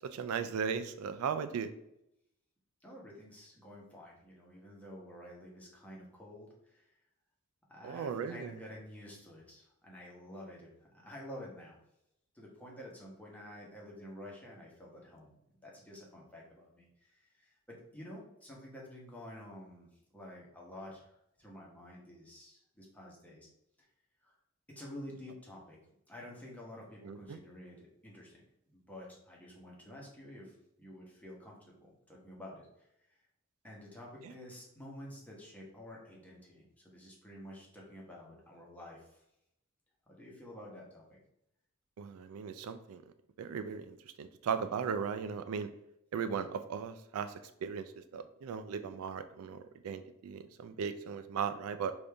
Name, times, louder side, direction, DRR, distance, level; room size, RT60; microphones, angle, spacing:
voice 1, 0.0-1.7 7.8-8.5 27.0-27.4 42.0-43.0 43.4-45.7 46.1-47.8 48.1-51.9, right 6 dB, 75° right, 11 dB, 0.3 m, -37 dB
voice 2, 2.8-6.9 7.7-10.7 11.0-11.8 12.3-19.9 20.1-23.5 23.8-23.9 24.2-24.3 24.7-25.8 26.1-28.4 28.7-31.6 31.8-33.2 33.6-39.2 40.1-41.2, left 1 dB, 5° left, -4 dB, 1.1 m, -50 dB
5.1 x 2.6 x 3.4 m, 0.80 s
head